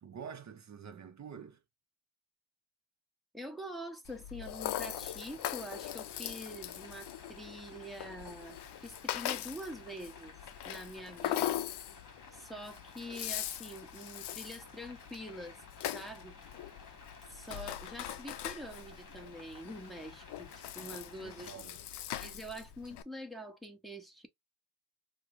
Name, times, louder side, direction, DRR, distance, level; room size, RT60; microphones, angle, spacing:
voice 1, 0.0-1.6 20.8-21.9, right 7 dB, 40° right, 0.6 m, -48 dB
voice 2, 3.3-10.3 10.6-11.6 12.3-15.6 15.9-16.4 17.3-21.5 22.2-24.3, equal, ahead, 0.9 m, -45 dB
Rattle (instrument), 4.1-23.0, left 12 dB, 65° left, 0.5 m, -41 dB
sound 1, 4.6-21.6, left 3 dB, 45° left, 1.5 m, -55 dB
4.6 x 2.1 x 2.5 m
cardioid pair, 95°, 45 cm